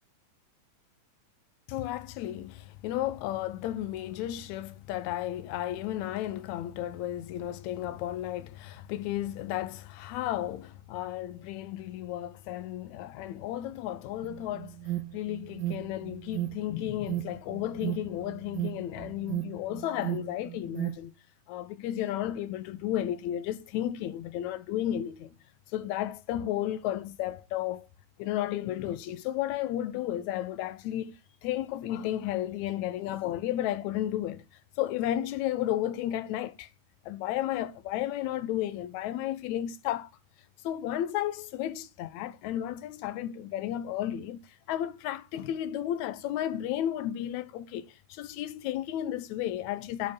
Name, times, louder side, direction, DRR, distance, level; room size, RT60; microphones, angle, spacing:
voice 1, 1.7-21.1 21.5-25.3 25.7-27.9 28.2-34.4 34.8-36.7 37.0-40.1 40.6-50.1, left 12 dB, 80° left, 1.7 m, -33 dB
Alarm, 14.2-20.9, right 15 dB, 85° right, 2.6 m, -35 dB
11.5 x 4.4 x 7.0 m
omnidirectional pair, 4.1 m